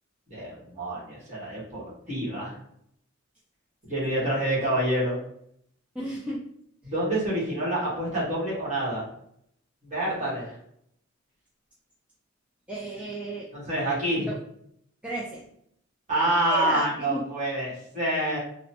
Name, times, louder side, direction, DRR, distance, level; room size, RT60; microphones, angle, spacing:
voice 1, 0.3-2.5 3.9-5.2 6.8-9.1 9.8-10.5 13.5-14.3 16.1-18.4, right 1 dB, 35° right, -7 dB, 1.4 m, -27 dB
voice 2, 5.9-6.4 6.8-6.9 12.7-13.5 14.2-14.4 15.0-15.4 16.5-17.2, right 1 dB, 5° right, -6 dB, 0.4 m, -33 dB
2.9 x 2.1 x 2.8 m, 0.71 s
head